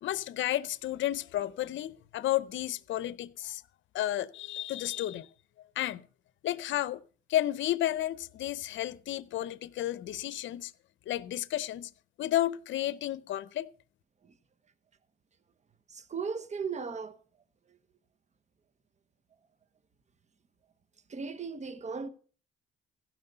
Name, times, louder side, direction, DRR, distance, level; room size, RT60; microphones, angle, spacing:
voice 1, 0.0-3.6 3.9-5.3 5.8-6.1 6.4-7.0 7.3-10.7 11.1-11.9 12.2-13.7, left 13 dB, 75° left, 0.7 m, -32 dB
voice 2, 15.9-17.2 21.1-22.1, right 5 dB, 35° right, 1.2 m, -36 dB
15.5 x 6.2 x 6.8 m
cardioid pair, 90°, 20 cm